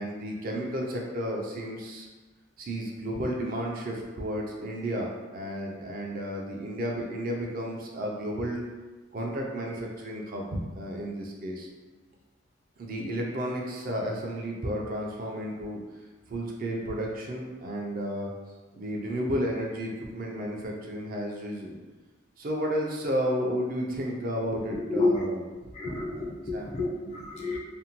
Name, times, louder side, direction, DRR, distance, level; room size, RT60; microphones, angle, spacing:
voice 1, 0.0-2.1 2.6-8.6 9.1-11.7 12.8-15.8 16.3-18.3 18.7-21.8 22.4-25.5 25.8-26.1 26.5-26.7, equal, 45° right, -1 dB, 0.4 m, -32 dB
voice 2, 24.9-25.3 25.7-27.6, left 2 dB, 35° left, -2 dB, 0.4 m, -29 dB
2.6 x 2.1 x 2.8 m, 1.2 s
head